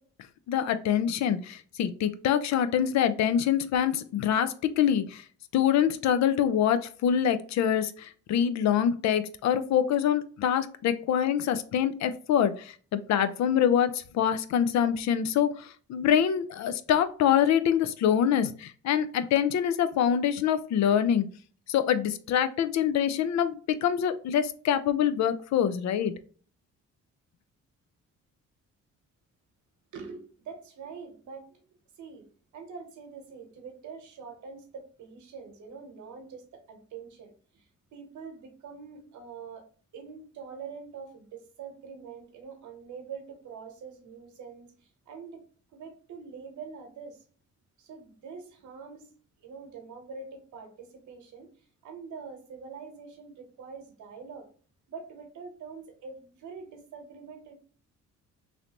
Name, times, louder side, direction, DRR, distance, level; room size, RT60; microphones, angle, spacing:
voice 1, 0.5-5.2 5.5-21.3 21.7-26.2, left 9 dB, 65° left, 12 dB, 0.4 m, -25 dB
voice 2, 29.9-31.6 32.0-32.3 32.5-39.6 39.9-45.4 45.7-47.2 47.8-49.0 49.4-51.5 51.8-54.5 54.9-57.5, right 5 dB, 75° right, 5 dB, 1.0 m, -44 dB
3.2 x 2.6 x 2.8 m, 0.42 s
cardioid pair, 90°, 30 cm